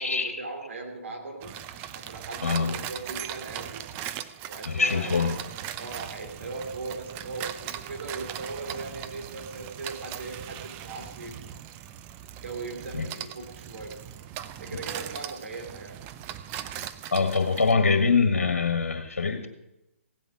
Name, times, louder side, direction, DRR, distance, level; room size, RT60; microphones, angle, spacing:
voice 1, 0.0-1.6 1.9-3.9 4.5-5.5 5.8-11.4 12.3-14.0 14.6-16.0, right 3 dB, 60° right, 3 dB, 3.2 m, -38 dB
sound 1, 1.4-17.7, right 11 dB, 25° right, 0.6 m, -39 dB
voice 2, 2.4-2.7 4.6-5.4 12.9-13.1 17.1-19.5, left 4 dB, 75° left, 7 dB, 1.8 m, -24 dB
16.5 x 8.2 x 6.2 m, 0.92 s
figure-of-eight pair, 135°, 8 cm